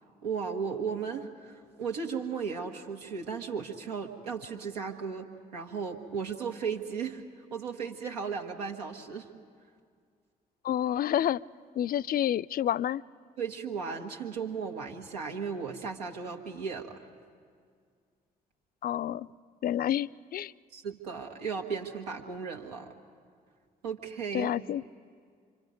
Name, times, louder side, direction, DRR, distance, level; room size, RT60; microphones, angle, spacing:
voice 1, 0.2-7.2 7.5-9.3 13.4-17.0 20.7-22.9 23.8-24.5, right 6 dB, 80° right, 3 dB, 1.7 m, -35 dB
voice 2, 10.6-11.4 11.8-13.0 18.8-19.3 19.6-20.5 24.3-24.8, left 11 dB, 45° left, 19 dB, 0.5 m, -29 dB
27.0 x 26.0 x 5.3 m, 2.1 s
figure-of-eight pair, 40°, 21 cm